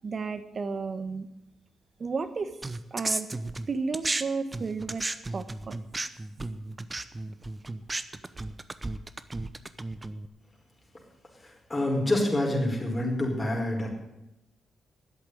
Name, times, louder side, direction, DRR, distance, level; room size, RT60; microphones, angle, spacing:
voice 1, 0.0-1.3 2.0-2.5 2.9-3.3 3.7-5.0 5.3-5.8 6.4-6.5, right 4 dB, 45° right, 12 dB, 1.1 m, -32 dB
sound 1, 2.6-4.2 4.5-10.3, right 2 dB, 25° right, 0.8 m, -34 dB
voice 2, 11.7-13.9, left 1 dB, 20° left, -1 dB, 4.9 m, -26 dB
11.0 x 8.0 x 9.7 m, 0.93 s
supercardioid pair, 55°, 0 cm